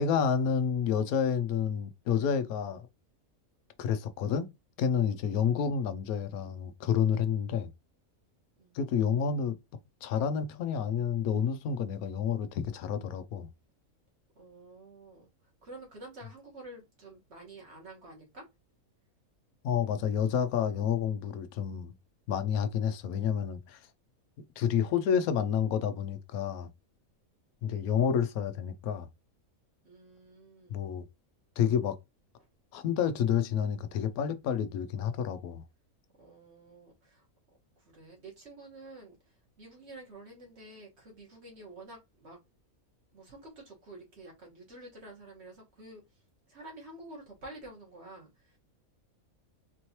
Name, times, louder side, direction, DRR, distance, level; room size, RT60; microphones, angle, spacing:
voice 1, 0.0-2.9 3.8-4.5 4.8-7.7 8.7-9.6 10.0-13.5 19.6-21.9 22.3-23.8 24.6-26.7 27.6-29.1 30.7-31.0 31.6-32.0 32.7-35.6, left 7 dB, 90° left, 1.1 m, -29 dB
voice 2, 14.3-15.3 15.6-18.5 29.8-30.8 36.2-37.2 37.8-42.4 43.1-46.0 46.5-48.6, right 2 dB, 50° right, 1.7 m, -49 dB
4.2 x 3.1 x 2.8 m
omnidirectional pair, 1.5 m